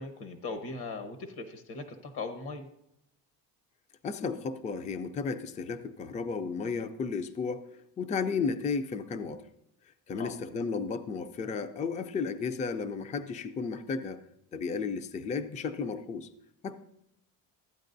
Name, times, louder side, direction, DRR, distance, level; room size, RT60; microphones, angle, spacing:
voice 1, 0.0-2.6 10.2-10.3, left 3 dB, 65° left, 6 dB, 1.1 m, -39 dB
voice 2, 4.0-7.6 8.0-9.4 10.1-14.2 14.5-16.3 16.6-16.8, left 5 dB, 20° left, 10 dB, 0.4 m, -33 dB
13.5 x 9.0 x 2.6 m, 0.77 s
cardioid pair, 140°, 42 cm